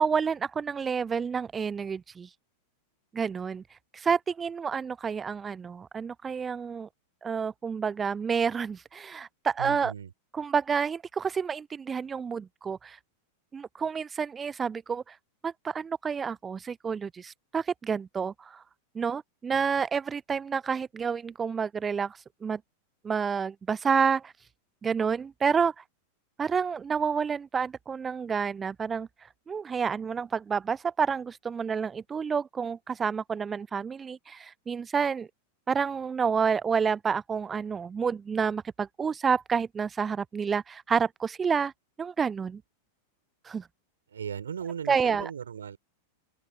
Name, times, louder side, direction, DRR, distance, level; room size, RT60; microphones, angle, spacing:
voice 1, 0.0-2.3 3.1-3.6 3.9-6.9 7.2-9.9 10.4-13.0 13.5-15.2 15.4-18.6 19.0-22.6 23.0-24.3 24.8-25.8 26.4-29.1 29.5-35.3 35.7-41.7 42.0-42.6 43.4-43.7 44.9-45.3, right 6 dB, 20° right, 0.6 m, -29 dB
voice 2, 9.6-10.1 44.1-45.8, right 7 dB, 70° right, 5.5 m, -37 dB
open air
figure-of-eight pair, 90°, 0 cm